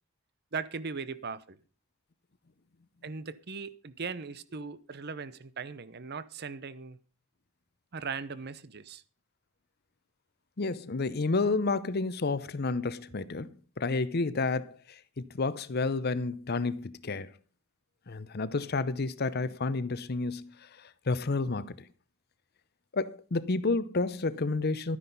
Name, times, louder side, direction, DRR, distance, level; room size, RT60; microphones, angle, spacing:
voice 1, 0.5-1.6 3.0-7.0 7.9-9.0, right 5 dB, 50° right, 0.8 m, -39 dB
voice 2, 10.6-17.3 18.1-21.9 22.9-25.0, left 3 dB, 50° left, 0.7 m, -30 dB
12.5 x 9.8 x 5.4 m
head